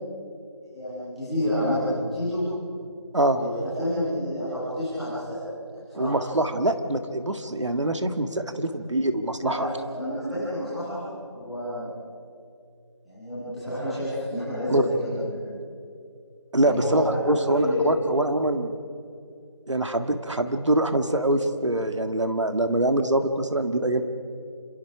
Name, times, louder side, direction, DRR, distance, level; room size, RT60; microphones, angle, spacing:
voice 1, 0.6-2.4 3.4-5.4 5.7-6.1 9.4-11.9 13.0-15.5 16.6-18.1, equal, ahead, -17 dB, 1.4 m, -29 dB
voice 2, 5.9-9.7 14.7-14.8 16.5-18.7 19.7-24.0, right 1 dB, 75° right, 7 dB, 2.2 m, -24 dB
28.0 x 27.0 x 4.9 m, 2.3 s
figure-of-eight pair, 175°, 16 cm